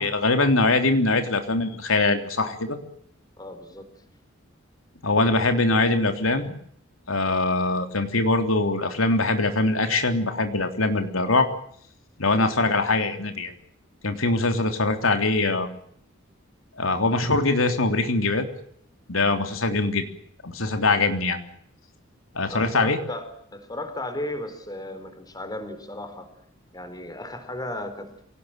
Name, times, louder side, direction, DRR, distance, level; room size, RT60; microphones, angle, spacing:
voice 1, 0.0-2.8 5.0-6.5 7.1-11.5 12.2-13.5 14.0-15.8 16.8-18.5 19.1-20.1 20.4-21.4 22.3-23.0, left 2 dB, 90° left, 6 dB, 3.4 m, -22 dB
voice 2, 3.4-3.9 22.4-26.3 26.7-28.3, left 1 dB, 20° left, 8 dB, 4.4 m, -35 dB
26.5 x 18.5 x 9.0 m, 0.67 s
head